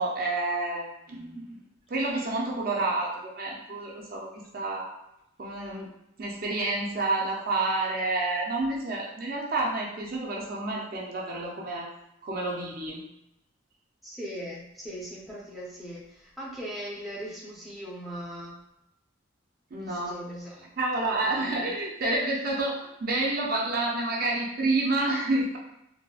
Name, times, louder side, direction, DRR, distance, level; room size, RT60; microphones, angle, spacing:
voice 1, 0.0-1.6 1.9-4.3 4.5-4.9 5.4-5.9 6.2-11.9 12.2-13.0 19.7-20.1 20.8-25.6, right 2 dB, 45° right, -2 dB, 0.5 m, -29 dB
voice 2, 14.0-18.6 19.8-20.7 20.9-21.6, equal, ahead, -7 dB, 0.6 m, -40 dB
4.0 x 2.1 x 2.3 m, 0.83 s
head